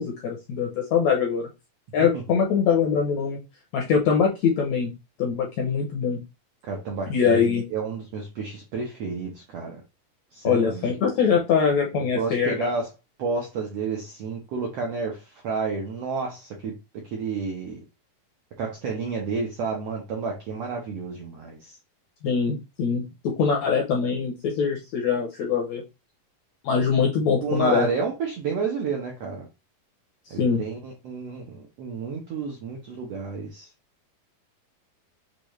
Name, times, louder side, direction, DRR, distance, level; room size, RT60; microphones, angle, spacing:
voice 1, 0.0-1.5 1.9-3.4 3.7-4.9 5.2-6.2 7.1-7.6 10.4-12.7 22.2-25.8 26.6-27.9 30.3-30.6, left 6 dB, 80° left, 0 dB, 1.6 m, -23 dB
voice 2, 6.6-7.5 7.7-9.8 10.3-10.9 11.9-12.9 13.2-16.7 17.0-17.8 18.6-21.7 27.4-29.5 30.3-33.7, right 5 dB, 75° right, 0 dB, 1.4 m, -30 dB
6.7 x 2.5 x 3.1 m, 0.26 s
omnidirectional pair, 4.1 m